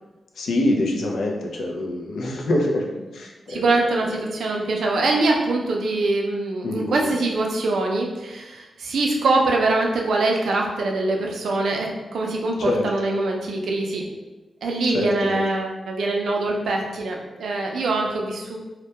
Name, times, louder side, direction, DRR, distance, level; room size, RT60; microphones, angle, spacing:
voice 1, 0.4-2.9 3.1-4.2 6.6-7.1 12.6-12.8 14.9-15.4, left 1 dB, 80° left, 0 dB, 0.4 m, -25 dB
voice 2, 3.5-14.1 14.6-18.6, right 2 dB, 75° right, 0 dB, 0.4 m, -23 dB
2.2 x 2.1 x 2.7 m, 1.1 s
wide cardioid pair, 170°, 0 cm